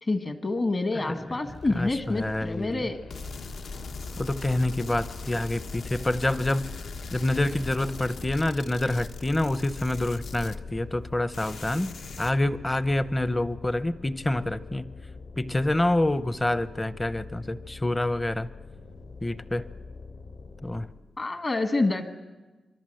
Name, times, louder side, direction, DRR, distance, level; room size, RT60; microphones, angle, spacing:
voice 1, 0.0-3.0 21.2-22.0, left 2 dB, 35° left, 8 dB, 1.4 m, -27 dB
voice 2, 0.9-1.3 1.7-2.8 4.2-6.6 7.1-11.9 12.2-14.9 15.4-18.5 19.2-19.6 20.6-20.9, left 1 dB, 15° left, 14 dB, 0.7 m, -27 dB
sound 1, 1.5-21.1, left 3 dB, 55° left, 6.0 m, -44 dB
sound 2, 3.1-11.1 11.3-12.3, left 3 dB, 70° left, 1.3 m, -40 dB
25.5 x 24.0 x 7.8 m, 1.2 s
wide cardioid pair, 140°, 0 cm